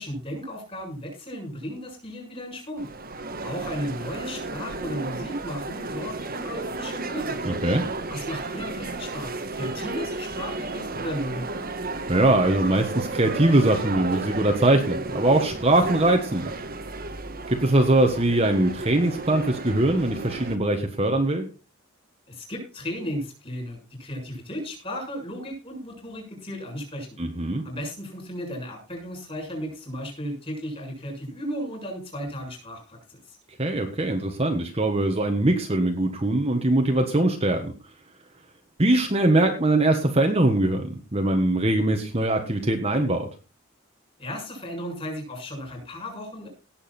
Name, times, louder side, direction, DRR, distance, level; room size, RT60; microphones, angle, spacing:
voice 1, 0.0-2.9 3.4-7.4 8.1-11.6 22.3-27.2 27.6-33.4 44.2-46.5, equal, 25° left, 1 dB, 7.1 m, -35 dB
sound 1, 2.8-20.6, right 3 dB, 45° right, 1.4 m, -33 dB
voice 2, 7.4-7.8 12.1-16.5 17.5-21.5 27.2-27.6 33.6-37.7 38.8-43.3, right 1 dB, 30° right, 4 dB, 1.5 m, -22 dB
18.0 x 7.5 x 4.4 m, 0.33 s
head